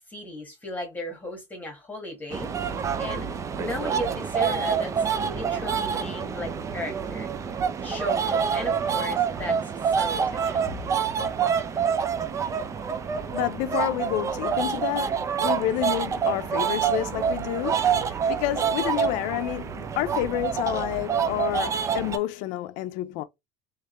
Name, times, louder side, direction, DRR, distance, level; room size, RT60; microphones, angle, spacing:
voice 1, 0.1-2.5 3.0-3.3 3.6-7.3 7.8-9.6 9.9-10.8, left 1 dB, 10° left, 1.4 m, -35 dB
sound 1, 2.3-22.2, right 7 dB, 20° right, 0.4 m, -27 dB
voice 2, 13.3-23.2, left 14 dB, 65° left, 0.6 m, -29 dB
3.5 x 3.1 x 3.1 m
cardioid pair, 145°, 14 cm